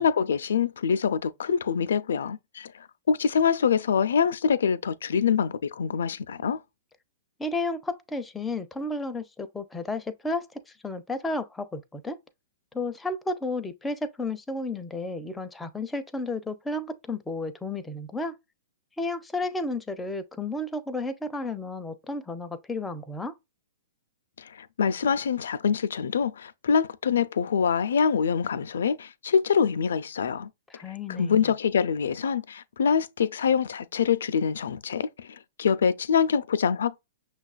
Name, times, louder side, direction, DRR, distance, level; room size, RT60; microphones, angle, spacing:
voice 1, 0.0-6.6 24.4-30.5 31.1-37.1, left 6 dB, 80° left, 0.4 m, -25 dB
voice 2, 7.4-12.2 12.7-18.4 19.0-23.3 30.7-31.4, left 2 dB, 10° left, 0.5 m, -32 dB
6.0 x 2.3 x 2.4 m
hypercardioid pair, 135°, 0 cm